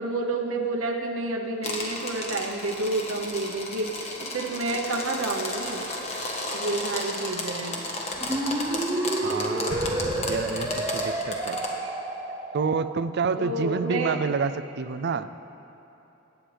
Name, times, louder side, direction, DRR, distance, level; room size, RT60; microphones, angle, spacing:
voice 1, 0.0-5.9 6.5-7.8 13.4-14.2, right 2 dB, 85° right, 2 dB, 0.9 m, -29 dB
sound 1, 1.6-11.7, left 2 dB, 30° left, 1.4 m, -33 dB
Evacuation Alarm Chirps (Reverbed), 8.1-12.9, right 1 dB, 20° right, 0.7 m, -30 dB
voice 2, 9.2-9.8 10.3-11.6 12.5-15.3, right 5 dB, 55° right, 12 dB, 0.4 m, -28 dB
Explosion, 9.7-11.3, equal, 60° left, 1.6 m, -37 dB
22.0 x 9.2 x 3.4 m, 3.0 s
head